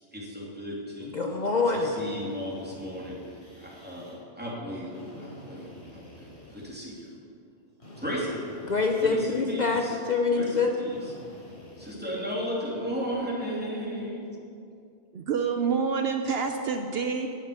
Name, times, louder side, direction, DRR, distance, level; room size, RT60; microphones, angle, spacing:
voice 1, 0.1-1.1 1.7-3.2 3.6-7.1 8.0-8.5 9.1-9.9 10.3-11.0 11.8-14.3, equal, 10° right, -6 dB, 3.2 m, -35 dB
voice 2, 1.0-2.0 8.7-10.7, left 4 dB, 45° left, 2 dB, 0.8 m, -25 dB
Drill, 1.9-4.1 4.9-7.1 7.8-9.7 10.9-12.3, equal, 75° left, 4.1 m, -49 dB
voice 3, 15.1-17.3, right 5 dB, 65° right, 5 dB, 0.9 m, -27 dB
11.0 x 7.1 x 9.6 m, 2.5 s
omnidirectional pair, 1.1 m